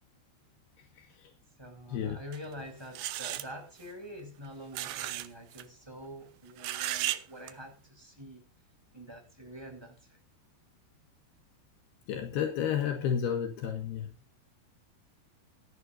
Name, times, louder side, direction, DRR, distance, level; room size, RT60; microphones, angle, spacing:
voice 1, 1.6-8.5 8.9-10.2, equal, 5° right, 5.6 m, -46 dB
sound 1, 2.3-2.5 2.9-3.5 4.7-5.3 5.5-5.6 6.6-7.2 7.5-7.6, right 14 dB, 90° right, 3.0 m, -34 dB
voice 2, 12.1-14.1, left 8 dB, 75° left, 3.6 m, -31 dB
17.5 x 14.5 x 2.7 m
omnidirectional pair, 4.7 m